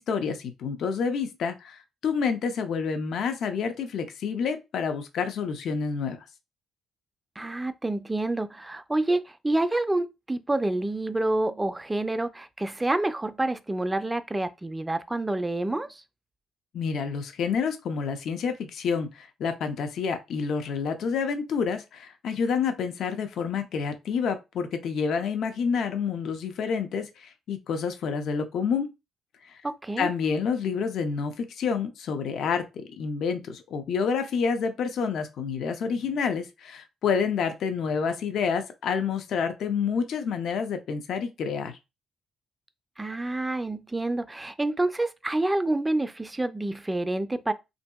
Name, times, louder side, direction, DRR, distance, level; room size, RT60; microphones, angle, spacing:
voice 1, 0.0-6.2 16.7-28.9 30.0-41.7, left 6 dB, 70° left, 0.4 m, -28 dB
voice 2, 7.4-16.0 29.8-30.1 43.0-47.5, right 2 dB, 15° right, 0.3 m, -28 dB
2.8 x 2.6 x 2.2 m
cardioid pair, 90°, 0 cm